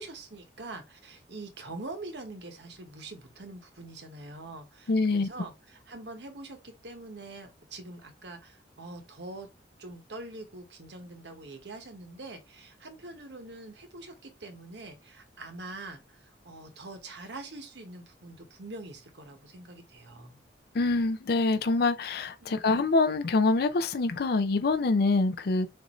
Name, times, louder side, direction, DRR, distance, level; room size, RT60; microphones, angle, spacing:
voice 1, 0.0-9.5 9.8-20.4 22.4-22.6, right 2 dB, 70° right, 1.2 m, -44 dB
voice 2, 4.9-5.3 20.7-25.7, left 3 dB, 60° left, 0.5 m, -25 dB
6.5 x 2.6 x 3.1 m
head